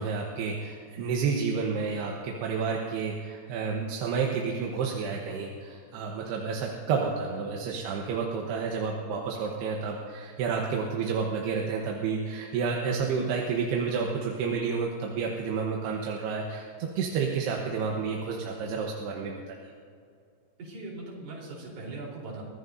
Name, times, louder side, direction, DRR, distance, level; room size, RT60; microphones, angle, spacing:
voice 1, 0.0-19.7, right 5 dB, 75° right, -1 dB, 2.9 m, -30 dB
voice 2, 20.6-22.4, right 2 dB, 55° right, -4 dB, 5.5 m, -40 dB
23.5 x 17.0 x 2.7 m, 2.3 s
omnidirectional pair, 5.2 m